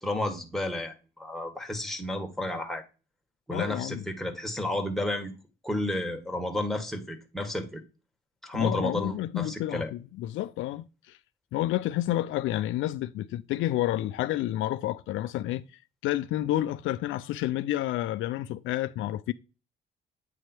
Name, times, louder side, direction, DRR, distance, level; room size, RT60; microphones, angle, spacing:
voice 1, 0.0-2.8 3.5-5.3 5.6-7.8 8.4-9.9, left 1 dB, ahead, 1.6 m, -31 dB
voice 2, 3.5-4.0 8.5-11.2 11.5-15.6 16.0-19.3, left 14 dB, 85° left, 0.4 m, -30 dB
9.2 x 3.2 x 4.5 m
cardioid pair, 90°, 20 cm